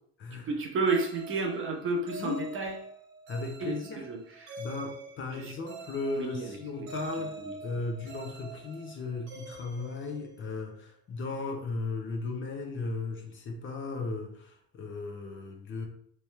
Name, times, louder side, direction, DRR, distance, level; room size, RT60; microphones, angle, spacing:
voice 1, 0.3-2.8 3.6-4.6 5.3-5.5 6.2-6.9 7.2-7.5, right 3 dB, 40° right, 2 dB, 0.9 m, -32 dB
sound 1, 0.9-10.7, right 3 dB, 70° right, 1.3 m, -45 dB
voice 2, 3.3-4.0 4.6-15.9, left 3 dB, 40° left, 2 dB, 0.9 m, -36 dB
3.2 x 3.1 x 3.2 m, 0.64 s
supercardioid pair, 100°, 31 cm